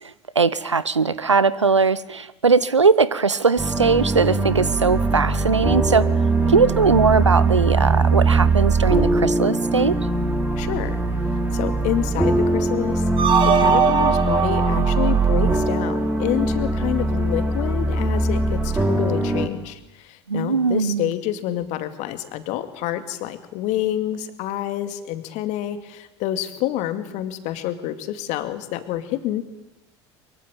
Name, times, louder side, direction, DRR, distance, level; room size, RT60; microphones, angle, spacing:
voice 1, 0.4-6.1 6.5-9.9 20.3-21.1, right 4 dB, 90° right, 19 dB, 0.8 m, -19 dB
sound 1, 3.6-19.5, right 3 dB, 10° right, 4.6 m, -21 dB
voice 2, 10.6-11.0 11.5-13.0 13.5-29.4, left 12 dB, 55° left, 9 dB, 2.4 m, -28 dB
sound 2, 13.2-16.3, right 6 dB, 35° right, 2.6 m, -21 dB
23.5 x 23.0 x 8.9 m, 1.0 s
figure-of-eight pair, 70°, 15 cm